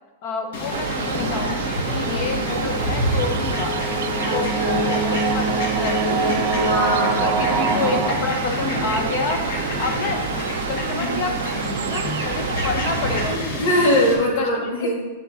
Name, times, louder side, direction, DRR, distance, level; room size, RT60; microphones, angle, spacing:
voice 1, 0.2-3.8 4.3-6.5 7.1-9.4 9.8-13.7 14.3-14.9, left 4 dB, 35° left, 5 dB, 0.8 m, -29 dB
Fowl, 0.5-14.1, left 1 dB, 60° left, 1.6 m, -28 dB
sound 1, 0.7-13.4, right 8 dB, 85° right, 0.4 m, -29 dB
sound 2, 1.5-8.1, right 3 dB, 20° right, 0.7 m, -25 dB
voice 2, 4.2-4.9 6.5-8.0 11.0-12.0 13.3-14.9, equal, 85° left, -2 dB, 2.5 m, -24 dB
7.7 x 6.7 x 3.7 m, 1.2 s
supercardioid pair, 175°, 0 cm